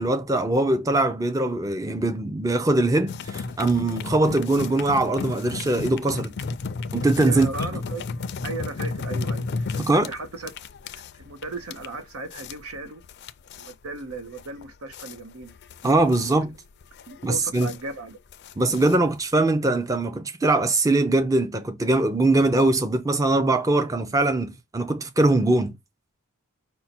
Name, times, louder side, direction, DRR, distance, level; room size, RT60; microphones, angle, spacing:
voice 1, 0.0-6.3 6.9-7.5 9.8-10.1 15.8-16.5 17.2-17.7 18.6-25.7, right 2 dB, 15° right, 0.4 m, -22 dB
sound 1, 3.1-19.4, left 4 dB, 50° left, 0.4 m, -33 dB
voice 2, 7.2-8.0 8.4-10.5 10.8-13.0 13.6-15.5 16.1-16.4 17.1-18.2, right 2 dB, 90° right, 1.0 m, -36 dB
5.5 x 2.1 x 4.2 m
head